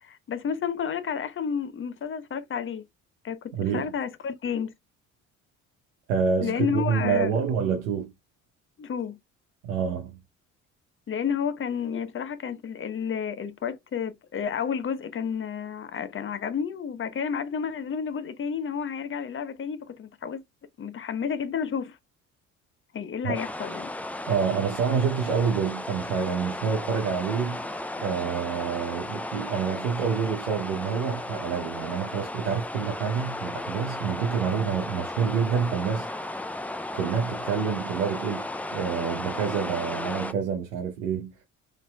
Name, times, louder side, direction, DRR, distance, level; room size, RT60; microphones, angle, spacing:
voice 1, 0.0-2.8 3.2-4.7 6.4-7.3 8.8-9.2 11.1-20.4 20.8-22.0 22.9-23.9, left 7 dB, 35° left, 0.7 m, -31 dB
voice 2, 3.5-3.9 6.1-8.1 9.6-10.2 23.2-23.4 24.3-27.6 28.0-36.4 36.9-41.3, right 6 dB, 90° right, 0.8 m, -27 dB
sound 1, 23.3-40.3, left 1 dB, 5° left, 0.3 m, -35 dB
4.1 x 3.1 x 2.2 m
hypercardioid pair, 60°, 37 cm